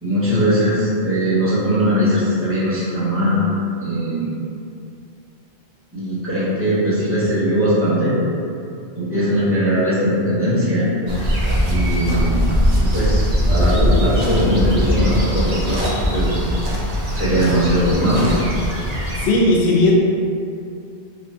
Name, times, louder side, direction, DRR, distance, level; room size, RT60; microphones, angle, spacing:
voice 1, 0.0-3.5 3.8-4.3 5.9-8.2 8.9-10.9 11.6-12.4 12.8-15.9 16.1-16.3 17.1-18.3, equal, 15° right, -12 dB, 1.0 m, -19 dB
sound 1, 11.1-19.3, equal, 50° right, 0.5 m, -20 dB
voice 2, 19.2-19.9, left 2 dB, 80° left, -2 dB, 0.8 m, -15 dB
3.6 x 2.1 x 2.7 m, 2.5 s
omnidirectional pair, 1.1 m